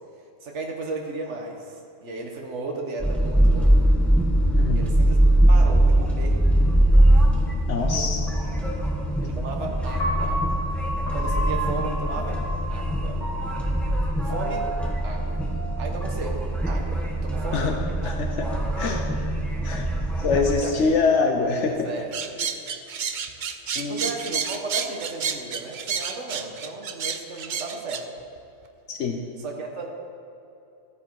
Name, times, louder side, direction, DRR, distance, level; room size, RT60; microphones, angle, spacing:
voice 1, 0.4-3.8 4.7-5.2 5.5-6.4 7.8-8.3 9.2-10.4 11.1-13.2 14.2-14.7 15.0-15.4 15.8-17.8 20.2-21.0 21.4-22.3 23.9-28.1 29.4-29.9, right 3 dB, 75° right, 1 dB, 1.6 m, -35 dB
sound 1, 3.0-20.5, right 1 dB, ahead, 1.5 m, -22 dB
voice 2, 7.7-8.2 17.5-17.7 18.0-18.5 18.8-19.0 19.6-19.9 20.2-21.7 23.8-24.0 28.9-29.2, left 4 dB, 80° left, 3 dB, 1.2 m, -24 dB
Piano, 10.0-16.2, right 1 dB, 35° left, 3.4 m, -32 dB
sound 2, 22.1-28.0, right 7 dB, 50° right, 0.7 m, -30 dB
14.0 x 9.3 x 4.7 m, 2.7 s
omnidirectional pair, 1.2 m